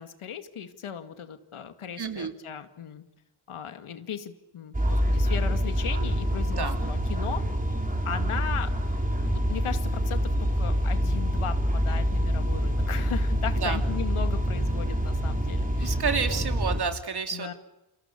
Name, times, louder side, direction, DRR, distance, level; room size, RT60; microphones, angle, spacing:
voice 1, 0.0-3.0 3.5-7.4 8.0-8.7 9.2-10.2 10.6-16.5 17.3-17.5, left 8 dB, 80° left, 8 dB, 2.3 m, -37 dB
voice 2, 2.0-2.3 6.5-6.7 13.6-13.8 15.8-17.5, right 5 dB, 50° right, 6 dB, 3.2 m, -30 dB
sound 1, 4.7-16.8, equal, 15° right, 4.2 m, -26 dB
29.0 x 28.0 x 7.0 m, 0.93 s
wide cardioid pair, 130°, 50 cm